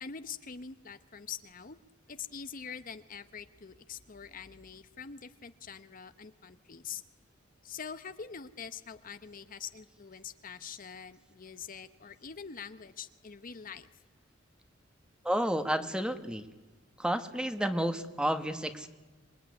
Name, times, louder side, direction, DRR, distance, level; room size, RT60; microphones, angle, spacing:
voice 1, 0.0-1.8 2.1-7.0 7.6-13.9, left 6 dB, 45° left, 11 dB, 0.9 m, -44 dB
voice 2, 15.2-16.5 17.0-18.9, equal, 5° right, 9 dB, 1.4 m, -31 dB
26.5 x 21.0 x 9.6 m, 1.2 s
head